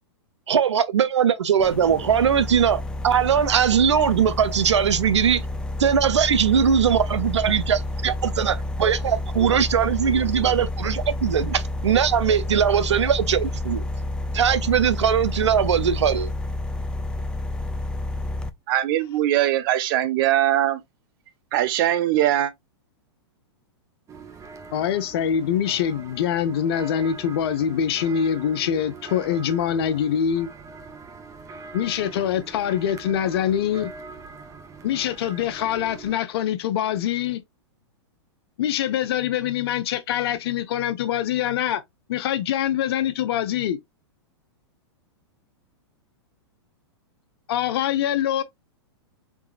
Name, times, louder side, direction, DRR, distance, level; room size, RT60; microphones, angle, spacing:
voice 1, 0.5-5.4 5.8-13.8 14.3-16.3, right 8 dB, 90° right, 0.6 m, -20 dB
sound 1, 1.6-18.5, left 2 dB, 5° left, 0.3 m, -30 dB
voice 2, 18.7-20.8 21.5-22.5, right 13 dB, 50° right, 0.7 m, -21 dB
sound 2, 24.1-36.2, right 4 dB, 20° right, 0.8 m, -42 dB
voice 3, 24.7-30.5 31.7-33.9 34.8-37.4 38.6-41.8 42.1-43.8 47.5-48.4, left 9 dB, 60° left, 0.7 m, -24 dB
4.7 x 3.7 x 2.4 m
hypercardioid pair, 125°, 14 cm